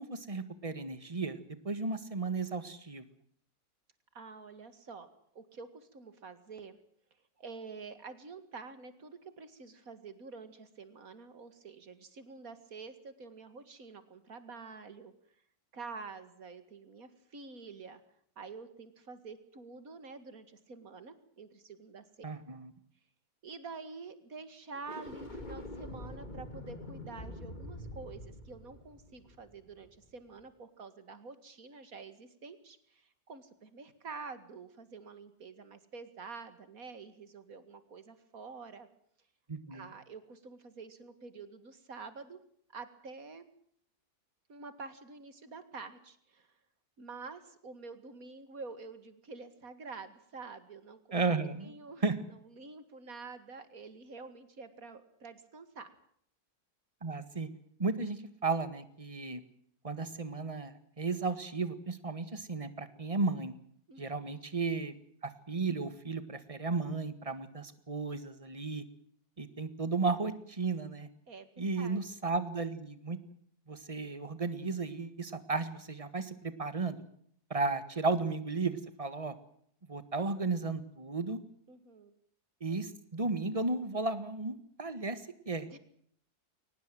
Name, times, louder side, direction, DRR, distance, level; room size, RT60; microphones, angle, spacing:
voice 1, 0.0-3.0 22.2-22.7 39.5-39.9 51.1-51.7 52.0-52.1 57.0-57.5 57.8-59.4 59.8-63.5 64.0-64.9 65.5-68.8 69.4-71.1 71.6-73.2 73.7-77.0 77.5-79.3 79.9-81.4 82.6-85.8, right 3 dB, 20° right, 12 dB, 1.7 m, -34 dB
voice 2, 4.1-5.1 5.3-6.8 7.4-15.1 15.7-18.0 18.4-22.0 23.4-38.9 39.7-42.4 42.7-43.5 44.5-46.5 47.0-51.0 51.6-55.9 63.9-64.3 71.3-72.0 81.7-82.1 85.7-85.8, right 4 dB, 60° right, 11 dB, 2.5 m, -48 dB
sound 1, 24.7-30.0, left 1 dB, 30° left, 2.5 m, -45 dB
23.0 x 19.0 x 7.6 m, 0.65 s
omnidirectional pair, 1.7 m